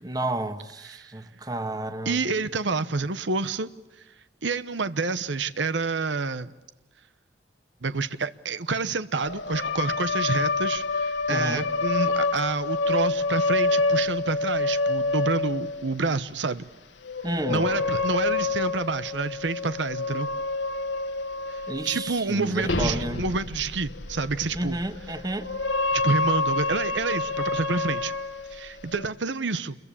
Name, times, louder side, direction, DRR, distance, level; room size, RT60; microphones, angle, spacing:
voice 1, 0.0-2.2 11.3-11.7 17.2-17.6 21.7-23.2 24.5-25.5, right 1 dB, 20° right, 1.5 m, -31 dB
voice 2, 2.0-3.7 4.4-6.5 7.8-16.6 17.5-20.3 21.5-24.8 25.9-28.1 28.5-29.8, right 3 dB, 80° right, 1.0 m, -28 dB
sound 1, 9.2-15.9 17.0-22.2 22.5-29.1, left 3 dB, 80° left, 2.0 m, -28 dB
28.5 x 22.5 x 8.6 m
head